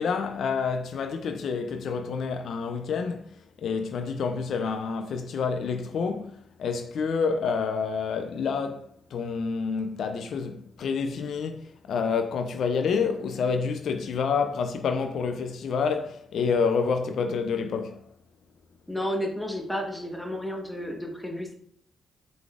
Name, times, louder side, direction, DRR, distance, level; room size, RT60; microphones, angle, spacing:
voice 1, 0.0-3.2 3.6-18.0, left 5 dB, 75° left, 0.4 m, -28 dB
voice 2, 18.9-21.5, equal, 5° left, 1.1 m, -32 dB
4.9 x 3.9 x 2.4 m
cardioid pair, 60°, 0 cm